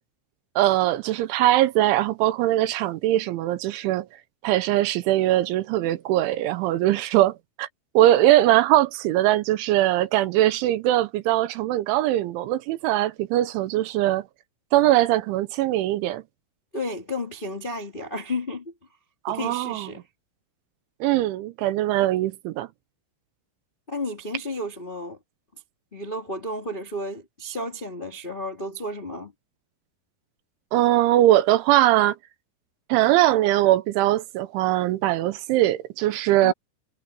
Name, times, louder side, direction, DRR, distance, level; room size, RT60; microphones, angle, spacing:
voice 1, 0.6-4.1 4.4-7.7 7.9-14.3 14.7-16.2 19.3-19.9 21.0-22.7 30.7-32.2 32.9-36.5, right 14 dB, 80° right, 3.0 m, -21 dB
voice 2, 16.7-18.7 19.3-20.0 23.9-25.2 25.9-29.3 36.4-36.5, left 1 dB, 70° left, 0.5 m, -32 dB
omnidirectional pair, 5.8 m